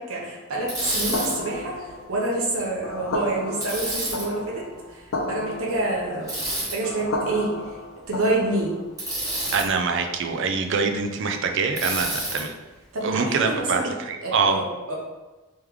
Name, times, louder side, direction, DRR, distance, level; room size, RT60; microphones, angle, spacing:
voice 1, 0.0-4.6 4.9-7.5 8.1-8.7 12.9-13.9 14.2-15.0, right 2 dB, 80° right, -3 dB, 0.9 m, -27 dB
Bicycle, 0.7-1.3 3.6-4.2 6.3-6.8 9.0-9.7 11.8-12.4, right 1 dB, 15° right, 1.4 m, -28 dB
sound 1, 1.1-8.9, left 2 dB, 75° left, 0.5 m, -33 dB
voice 2, 9.5-12.5 13.0-14.6, right 4 dB, 60° right, 5 dB, 0.4 m, -24 dB
3.2 x 3.2 x 3.5 m, 1.1 s
head